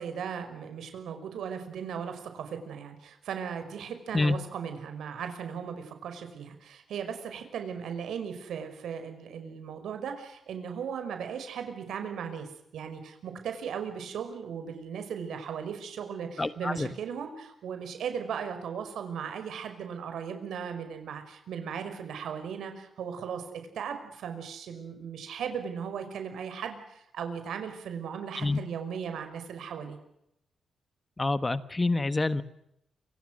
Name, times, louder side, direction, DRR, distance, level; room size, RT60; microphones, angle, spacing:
voice 1, 0.0-30.0, right 7 dB, 85° right, 7 dB, 5.6 m, -37 dB
voice 2, 16.4-16.9 28.4-28.6 31.2-32.4, left 2 dB, 15° left, 14 dB, 1.2 m, -27 dB
28.5 x 26.0 x 6.5 m, 0.79 s
wide cardioid pair, 165°, 0 cm